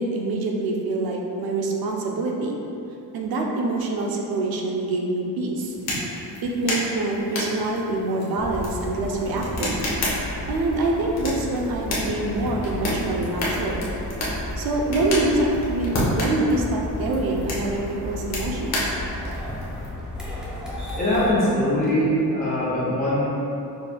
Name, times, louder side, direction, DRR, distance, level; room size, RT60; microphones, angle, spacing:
voice 1, 0.0-2.6 3.1-5.8 6.4-9.8 10.5-13.9 14.6-18.8, right 2 dB, 75° right, 0 dB, 0.6 m, -25 dB
sound 1, 5.6-19.9, left 1 dB, 50° left, 0.9 m, -31 dB
sound 2, 8.4-21.3, left 1 dB, ahead, 0.5 m, -33 dB
voice 2, 21.0-23.2, left 1 dB, 25° left, -9 dB, 1.2 m, -22 dB
5.1 x 3.3 x 2.2 m, 2.9 s
cardioid pair, 170°, 36 cm